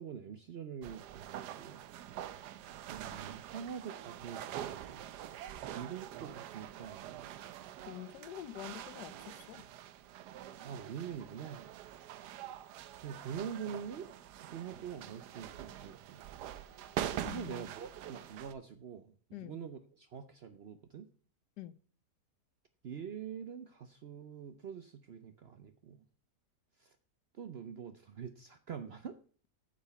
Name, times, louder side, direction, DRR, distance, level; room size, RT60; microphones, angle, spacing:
voice 1, 0.0-1.8 2.9-5.1 5.8-7.3 10.6-11.7 13.0-14.1 14.4-16.3 17.2-19.1 19.4-21.1 22.8-26.0 26.8-26.9 27.4-29.2, right 7 dB, 65° right, 9 dB, 0.6 m, -45 dB
sound 1, 0.8-18.5, right 11 dB, 80° right, 1.2 m, -45 dB
voice 2, 7.9-9.6 17.2-17.7 19.3-19.6 21.6-21.7, left 13 dB, 90° left, 16 dB, 1.2 m, -46 dB
8.3 x 5.2 x 6.7 m, 0.41 s
omnidirectional pair, 1.7 m